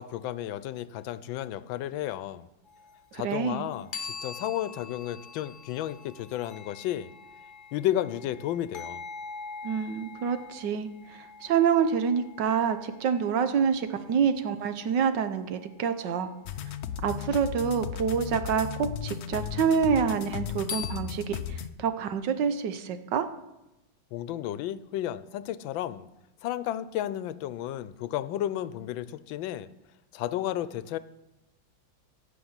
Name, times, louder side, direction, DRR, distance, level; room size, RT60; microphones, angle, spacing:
voice 1, 0.0-2.5 3.1-7.1 7.7-9.0 24.1-26.1 26.4-29.7 30.1-31.0, left 12 dB, 85° left, 15 dB, 1.4 m, -32 dB
sound 1, 2.7-3.0 3.3-16.0 19.1-19.2 20.7-21.0, left 5 dB, 35° left, 0.9 m, -44 dB
voice 2, 3.1-3.7 9.6-10.9 11.2-16.3 17.0-23.3, right 7 dB, 70° right, 10 dB, 1.4 m, -27 dB
sound 2, 16.5-21.7, left 9 dB, 65° left, 1.0 m, -35 dB
16.5 x 5.7 x 8.1 m, 0.94 s
omnidirectional pair, 2.1 m